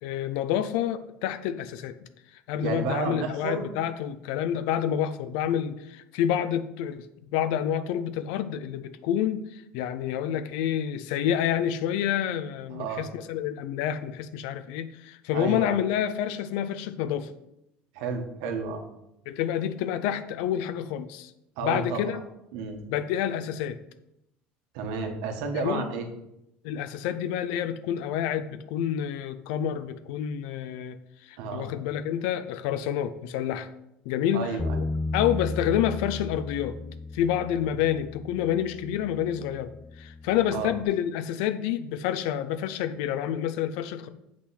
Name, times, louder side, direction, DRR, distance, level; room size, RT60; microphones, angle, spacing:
voice 1, 0.0-2.0 2.3-7.1 7.3-17.3 19.3-21.3 21.6-22.2 22.9-23.8 25.5-25.9 26.6-31.0 31.2-33.7 34.1-34.6 35.1-36.7 37.1-39.7 40.0-44.1, left 10 dB, 85° left, 11 dB, 0.5 m, -28 dB
voice 2, 2.6-3.7 12.7-13.1 15.3-15.7 17.9-18.8 21.6-22.1 22.5-22.8 24.7-26.1 31.4-31.7 34.3-34.8 40.5-40.7, right 4 dB, 85° right, 4 dB, 1.4 m, -31 dB
Bass guitar, 34.6-40.8, left 3 dB, 10° left, 0.5 m, -35 dB
7.9 x 6.0 x 4.2 m, 0.84 s
cardioid pair, 175°, 4 cm